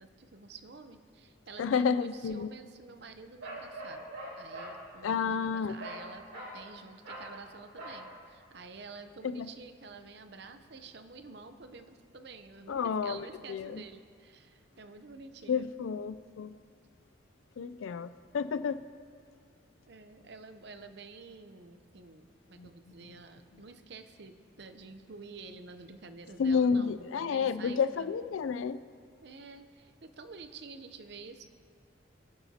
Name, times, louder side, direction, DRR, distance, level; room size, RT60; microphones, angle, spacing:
voice 1, 0.0-4.1 4.4-6.3 6.5-15.7 19.9-28.1 29.2-31.4, right 4 dB, 55° right, 9 dB, 0.7 m, -49 dB
voice 2, 1.6-2.5 5.0-5.7 9.2-9.5 12.7-13.8 15.5-16.6 17.6-18.8 22.6-22.7 23.1-23.2 26.4-28.8, left 6 dB, 90° left, 13 dB, 0.4 m, -30 dB
Bark, 3.4-4.8 5.8-6.1 6.3-6.6 7.0-7.3 7.8-8.0, right 1 dB, 90° right, 3.2 m, -42 dB
21.5 x 9.7 x 2.8 m, 2.1 s
head